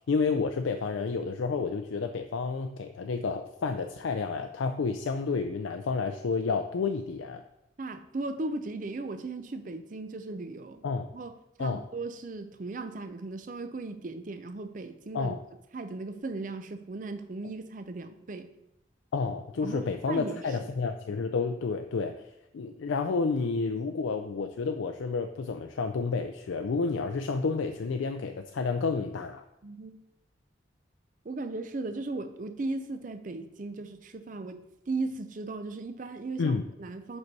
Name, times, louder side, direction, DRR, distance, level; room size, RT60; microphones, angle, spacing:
voice 1, 0.1-7.4 10.8-11.1 11.6-11.8 15.1-15.4 19.1-22.1 22.5-29.4 36.4-36.6, left 4 dB, 85° left, 7 dB, 0.4 m, -30 dB
voice 2, 7.8-10.8 11.1-11.3 11.6-15.4 15.7-18.5 19.6-20.7 29.6-30.0 31.2-34.6 34.9-37.2, right 3 dB, 40° right, 9 dB, 0.5 m, -37 dB
5.4 x 5.2 x 4.7 m, 0.87 s
head